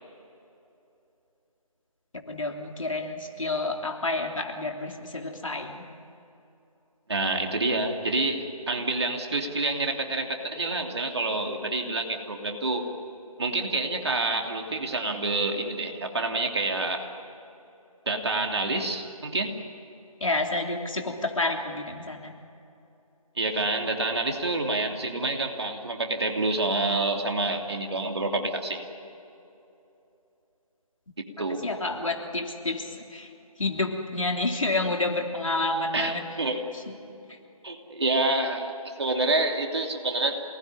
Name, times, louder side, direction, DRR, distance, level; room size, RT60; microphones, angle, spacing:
voice 1, 2.3-5.9 20.2-22.3 31.6-33.3 33.6-36.3 36.7-36.9 37.3-37.4, left 2 dB, 60° left, 2 dB, 3.3 m, -29 dB
voice 2, 7.1-12.9 13.4-17.1 18.1-19.6 23.4-28.8 31.4-31.7 35.9-36.6 37.6-40.4, right 2 dB, 45° right, 3 dB, 2.9 m, -28 dB
28.0 x 19.5 x 9.9 m, 2.9 s
figure-of-eight pair, 160°, 19 cm